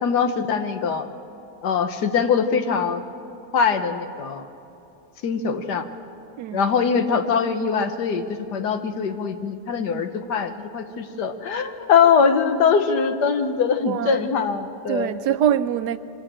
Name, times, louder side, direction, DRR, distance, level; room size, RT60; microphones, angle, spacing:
voice 1, 0.0-1.0 1.6-3.0 3.5-4.5 5.2-5.8 6.5-8.2 8.5-15.1, left 6 dB, 80° left, 1.7 m, -22 dB
voice 2, 13.8-14.2 14.9-16.0, right 10 dB, 85° right, 1.2 m, -24 dB
24.5 x 15.5 x 7.5 m
omnidirectional pair, 1.8 m